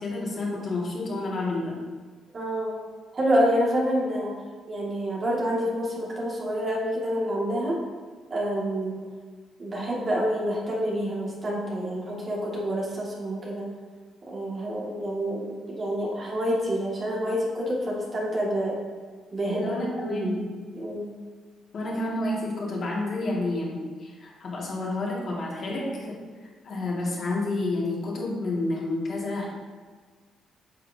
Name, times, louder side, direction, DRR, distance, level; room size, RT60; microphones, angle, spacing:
voice 1, 0.0-1.8 19.5-20.4 21.7-26.2 26.6-29.5, left 2 dB, 50° left, -4 dB, 2.0 m, -30 dB
voice 2, 2.3-2.8 3.1-4.3 4.7-7.8 8.3-8.9 9.6-13.7 14.3-18.8 19.3-20.5 20.7-21.1, equal, 40° right, -4 dB, 2.0 m, -27 dB
8.7 x 5.8 x 2.8 m, 1.5 s
cardioid pair, 90°, 0 cm